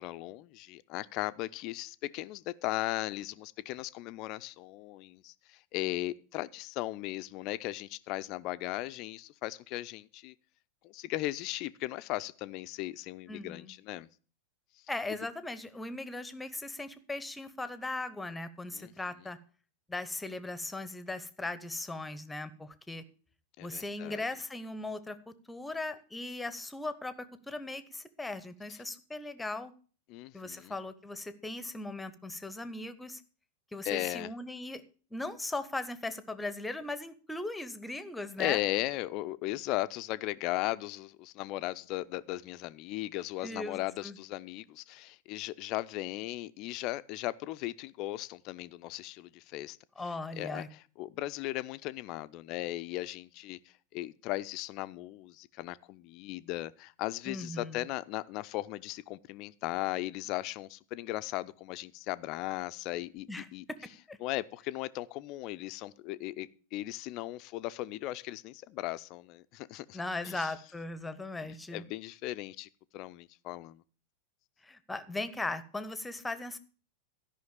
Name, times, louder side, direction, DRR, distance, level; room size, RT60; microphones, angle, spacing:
voice 1, 0.0-10.3 10.8-14.1 15.1-15.2 18.7-18.9 23.6-24.2 30.1-30.7 33.8-34.3 38.4-49.8 50.3-53.6 53.9-63.6 64.2-70.5 71.7-73.8, left 17 dB, 40° left, 0.5 m, -37 dB
voice 2, 13.3-13.7 14.9-19.4 19.9-23.0 23.6-29.7 30.3-33.2 33.7-34.8 35.1-38.6 43.4-43.8 44.0-44.2 50.0-50.7 57.3-57.8 63.3-64.2 69.9-71.8 74.6-76.6, left 2 dB, 10° left, 0.9 m, -38 dB
12.5 x 5.7 x 7.1 m
figure-of-eight pair, 90°, 0 cm